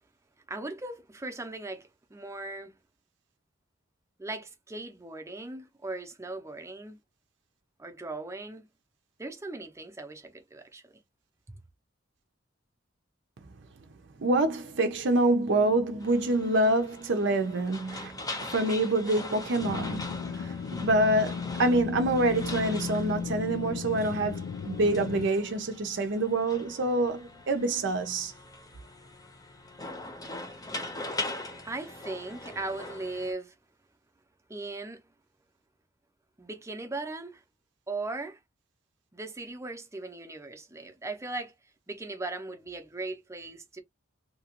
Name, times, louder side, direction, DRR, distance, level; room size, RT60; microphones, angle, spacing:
voice 1, 0.5-2.8 4.2-7.0 7.8-8.7 9.2-11.0 11.5-11.6 31.6-33.5 34.5-35.0 36.4-37.4 37.9-38.4 39.1-41.5 41.9-43.8, right 2 dB, 15° right, 0.7 m, -38 dB
voice 2, 14.2-28.3, right 2 dB, 65° right, 0.6 m, -26 dB
More car wash clanging, 16.0-33.3, left 2 dB, 20° left, 0.8 m, -42 dB
sound 1, 19.6-25.3, left 6 dB, 70° left, 0.3 m, -35 dB
2.8 x 2.4 x 2.9 m
head